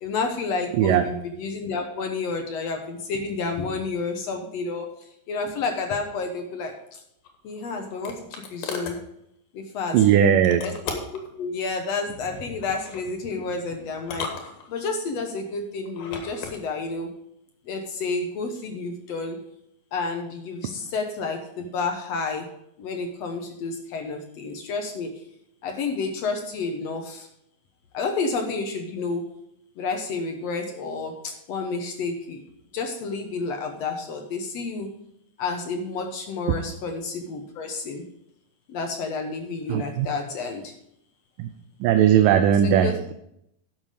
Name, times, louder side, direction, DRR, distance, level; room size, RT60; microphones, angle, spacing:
voice 1, 0.0-4.9 5.3-7.0 7.4-9.0 9.5-10.0 10.6-11.0 11.4-14.3 14.7-17.1 17.7-19.4 19.9-22.5 22.8-25.1 25.6-27.3 27.9-29.2 29.8-32.4 32.7-34.9 35.4-38.0 38.7-40.7 42.6-43.0, left 4 dB, 65° left, 4 dB, 1.8 m, -30 dB
voice 2, 0.7-1.1 9.9-10.6 39.7-40.1 41.4-41.5 41.8-43.1, right 9 dB, 80° right, 8 dB, 2.2 m, -18 dB
sound 1, 7.2-9.0 10.4-11.3 12.6-13.1 14.0-15.0 15.9-16.6, left 5 dB, 85° left, 3.4 m, -36 dB
11.0 x 7.2 x 5.0 m, 0.75 s
omnidirectional pair, 4.0 m